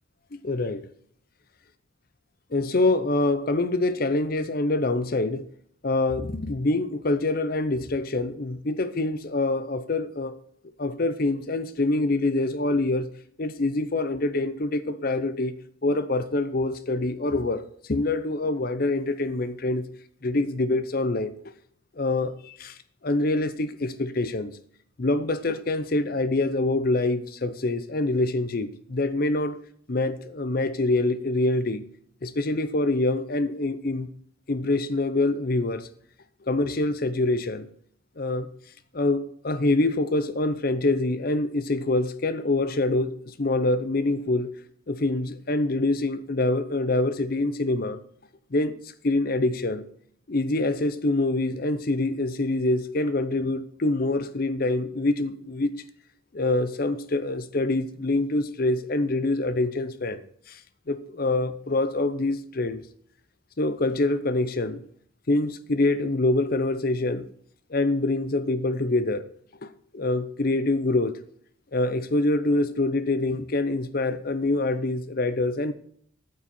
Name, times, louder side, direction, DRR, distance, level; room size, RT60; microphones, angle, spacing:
voice 1, 0.3-0.9 2.5-5.5 5.8-10.4 10.8-13.1 13.4-15.5 15.8-19.9 20.2-21.3 22.0-22.8 23.0-24.6 25.0-29.6 29.9-31.8 32.2-34.1 34.5-35.9 36.5-37.7 38.2-38.5 38.9-44.5 44.9-48.0 48.5-48.8 49.0-49.8 50.3-55.8 56.3-60.2 60.5-60.6 60.9-62.8 63.6-64.8 65.3-67.3 67.7-69.2 69.6-71.1 71.7-75.7, left 2 dB, 45° left, 12 dB, 0.7 m, -25 dB
8.6 x 8.6 x 4.3 m, 0.62 s
head